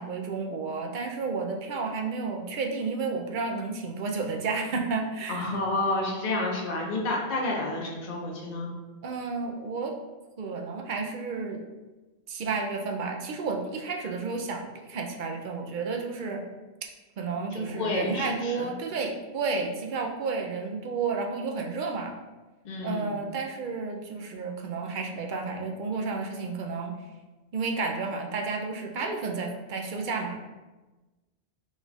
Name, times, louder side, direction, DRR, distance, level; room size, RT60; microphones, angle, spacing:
voice 1, 0.0-5.5 9.0-10.0 10.4-11.6 12.3-16.4 17.2-22.2 22.8-26.9 27.5-30.5, right 4 dB, 60° right, 2 dB, 0.6 m, -31 dB
voice 2, 5.3-8.7 17.5-18.7 22.6-23.2, left 2 dB, 45° left, -2 dB, 0.8 m, -30 dB
4.0 x 2.3 x 3.9 m, 1.2 s
omnidirectional pair, 1.1 m